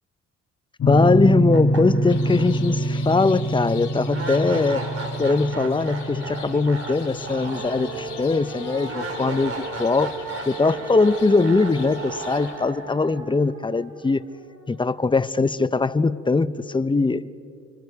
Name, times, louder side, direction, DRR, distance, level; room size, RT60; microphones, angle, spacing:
sound 1, 0.8-9.5, right 1 dB, 45° left, 2.2 m, -26 dB
voice 1, 0.9-4.8 5.2-10.1 10.5-14.3 14.7-17.3, left 3 dB, 15° left, 0.7 m, -21 dB
sound 2, 1.0-1.1 1.5-14.6, right 3 dB, 50° right, 4.4 m, -35 dB
sound 3, 2.1-12.6, left 9 dB, 85° left, 5.0 m, -44 dB
30.0 x 25.5 x 4.7 m
cardioid pair, 90°, 30 cm